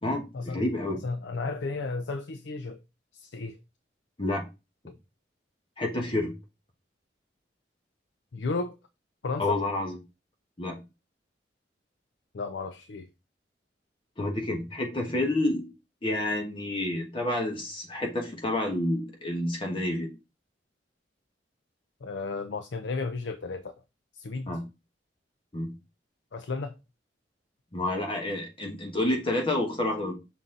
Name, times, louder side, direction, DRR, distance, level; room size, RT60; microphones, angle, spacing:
voice 1, 0.0-1.0 4.2-4.4 5.8-6.3 9.4-10.0 10.6-10.8 14.2-15.7 16.0-20.1 24.5-24.6 25.5-25.7 27.7-30.2, left 1 dB, 30° left, 1.3 m, -29 dB
voice 2, 1.0-2.8 3.1-3.6 4.9-5.0 8.3-8.8 9.2-9.6 12.3-13.1 22.0-23.7 24.1-24.6 26.3-26.8, left 3 dB, 75° left, 0.5 m, -33 dB
6.2 x 4.1 x 3.8 m
head